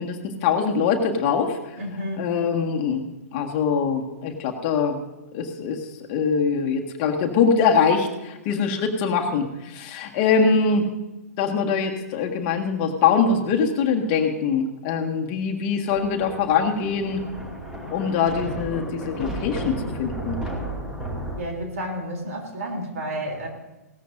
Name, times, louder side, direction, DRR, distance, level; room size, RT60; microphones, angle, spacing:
voice 1, 0.0-1.6 2.2-3.0 3.3-5.0 5.3-5.8 6.1-10.9 11.4-17.2 17.9-20.4, left 5 dB, 35° left, 2 dB, 1.7 m, -23 dB
voice 2, 1.8-2.3 21.4-23.5, right 1 dB, 60° right, 1 dB, 3.3 m, -31 dB
Thunder, 15.9-21.4, right 1 dB, 5° right, 2.4 m, -33 dB
17.5 x 13.5 x 2.7 m, 1.0 s
figure-of-eight pair, 115°, 9 cm